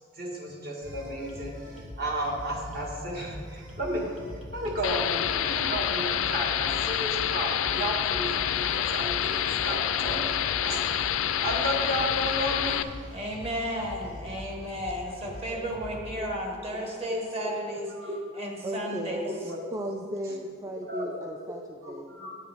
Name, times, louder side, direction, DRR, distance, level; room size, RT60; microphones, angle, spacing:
voice 1, 0.2-1.6 2.0-4.1 4.5-11.1 11.4-12.9 15.5-15.6 15.9-16.3 16.7-16.8 17.1-18.1 18.8-18.9 19.2-19.6 20.8-21.2 21.5-22.4, equal, 50° right, -1 dB, 1.5 m, -33 dB
sound 1, 0.8-16.1, left 1 dB, 80° right, 1.6 m, -43 dB
sound 2, 4.8-12.8, left 10 dB, 80° left, 0.4 m, -28 dB
voice 2, 13.1-17.9 18.3-19.3, equal, 30° right, 0 dB, 1.3 m, -33 dB
voice 3, 18.6-19.2 19.4-22.1, equal, 15° right, 2 dB, 0.4 m, -36 dB
9.1 x 9.0 x 3.4 m, 2.1 s
head